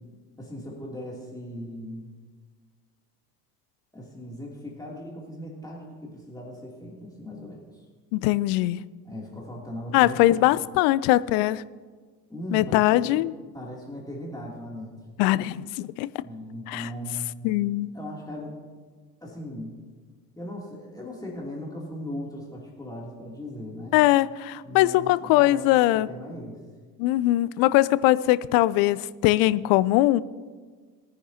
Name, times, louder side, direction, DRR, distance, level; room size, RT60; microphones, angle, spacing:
voice 1, 0.4-2.1 3.9-7.9 9.0-10.4 12.3-13.2 13.5-14.9 16.2-17.4 17.9-18.5 19.2-19.7 20.4-24.0 24.6-26.6, equal, 10° left, 3.0 m, -38 dB
voice 2, 8.1-8.8 9.9-11.6 12.5-13.3 15.2-16.1 16.7-16.9 17.4-17.9 23.9-26.1 27.0-30.2, left 16 dB, 50° left, 0.5 m, -21 dB
22.0 x 9.9 x 2.9 m
figure-of-eight pair, 60°, 46 cm